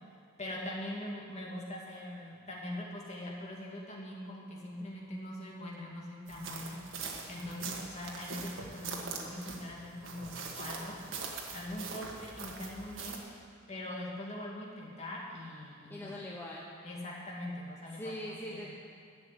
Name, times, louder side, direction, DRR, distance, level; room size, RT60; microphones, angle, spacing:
voice 1, 0.4-6.8 7.3-11.0 11.5-13.2 13.7-16.1 16.8-18.7, left 1 dB, 35° left, -4 dB, 2.4 m, -42 dB
sound 1, 6.3-13.2, right 4 dB, 80° right, 1.5 m, -42 dB
voice 2, 15.9-16.7 18.0-18.8, left 1 dB, 10° left, -4 dB, 0.9 m, -41 dB
11.5 x 7.3 x 8.9 m, 2.5 s
head